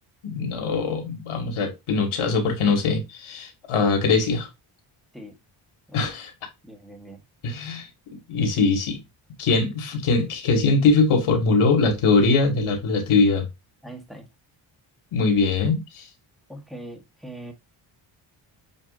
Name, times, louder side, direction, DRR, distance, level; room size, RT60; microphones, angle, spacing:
voice 1, 0.2-4.5 5.9-6.3 7.4-9.0 9.4-13.5 15.1-16.1, left 4 dB, 75° left, 1.6 m, -22 dB
voice 2, 6.6-7.2 13.8-14.3 16.5-17.5, right 1 dB, ahead, 1.0 m, -41 dB
7.1 x 2.5 x 2.4 m
cardioid pair, 80°, 50 cm